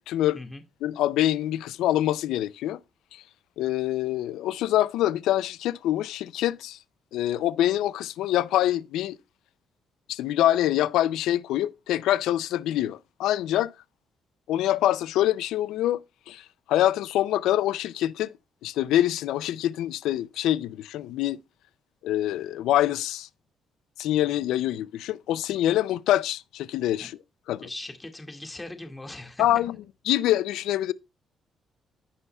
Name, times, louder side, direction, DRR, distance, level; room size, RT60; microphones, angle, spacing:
voice 1, 0.0-0.4 0.8-2.8 3.1-3.2 3.6-6.8 7.1-9.2 10.1-13.7 14.5-18.3 18.6-21.4 22.0-23.3 24.0-27.2 27.5-27.7 29.4-29.8 30.1-30.9, left 13 dB, 90° left, 0.4 m, -25 dB
voice 2, 27.6-29.5, left 2 dB, 15° left, 1.9 m, -40 dB
15.5 x 5.5 x 2.3 m
cardioid pair, 90°, 0 cm